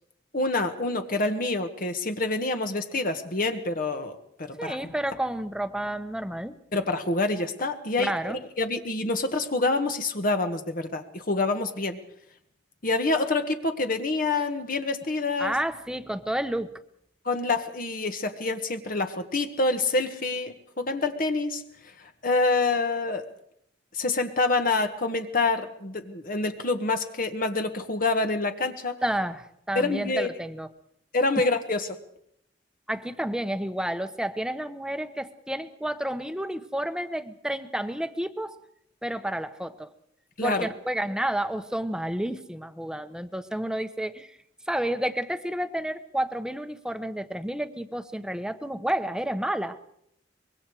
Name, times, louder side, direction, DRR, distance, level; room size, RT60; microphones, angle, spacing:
voice 1, 0.3-4.9 6.7-12.0 12.8-15.5 17.2-21.6 22.0-23.3 23.9-29.0 29.7-30.3 31.1-32.0 40.4-40.7, left 3 dB, 50° left, 6 dB, 1.5 m, -27 dB
voice 2, 4.6-6.5 8.0-8.4 15.4-16.8 29.0-30.7 32.9-38.6 39.0-39.9 40.4-44.4 44.7-49.9, right 1 dB, 5° right, 10 dB, 1.0 m, -30 dB
25.0 x 22.0 x 4.9 m, 0.71 s
head